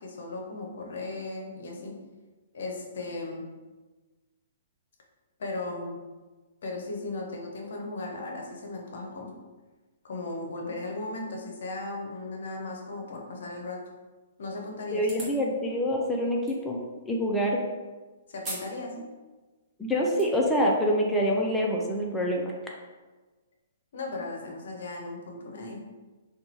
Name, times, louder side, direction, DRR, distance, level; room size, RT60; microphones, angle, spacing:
voice 1, 0.0-1.9 2.5-3.5 5.4-6.0 6.6-9.3 10.0-13.8 14.4-15.1 18.3-19.0 23.9-25.8, left 2 dB, 70° left, 1 dB, 0.6 m, -36 dB
voice 2, 14.9-16.8 17.1-17.6 19.8-22.5, equal, 5° left, -2 dB, 0.4 m, -26 dB
sound 1, 15.0-15.4 16.5-16.6 18.4-18.7 19.1-19.2 19.9-20.2, right 2 dB, 20° right, 1.0 m, -38 dB
2.8 x 2.2 x 2.8 m, 1.2 s
hypercardioid pair, 140°, 0 cm